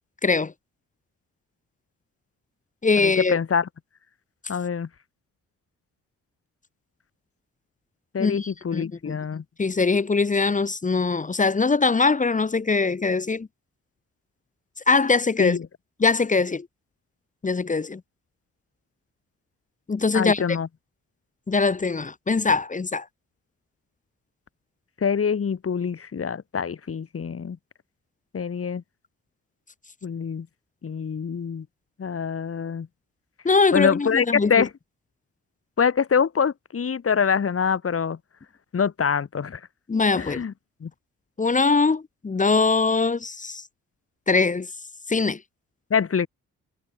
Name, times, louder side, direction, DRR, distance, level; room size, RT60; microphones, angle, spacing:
voice 1, 0.2-0.5 2.8-3.4 8.2-9.2 9.6-13.5 14.9-15.6 16.0-16.7 17.4-18.0 19.9-20.4 21.5-23.0 33.4-34.6 39.9-40.4 41.4-43.6 44.3-44.7 45.1-45.4, left 4 dB, 25° left, 1.0 m, -22 dB
voice 2, 3.0-3.7 4.5-4.9 8.1-9.4 15.4-15.7 20.1-20.7 25.0-27.6 28.3-28.8 30.0-30.5 30.8-31.6 32.0-32.9 33.7-34.7 35.8-38.2 38.7-39.6 40.2-40.5 40.8-40.9 45.9-46.3, left 6 dB, 45° left, 2.7 m, -25 dB
supercardioid pair, 60°, 32 cm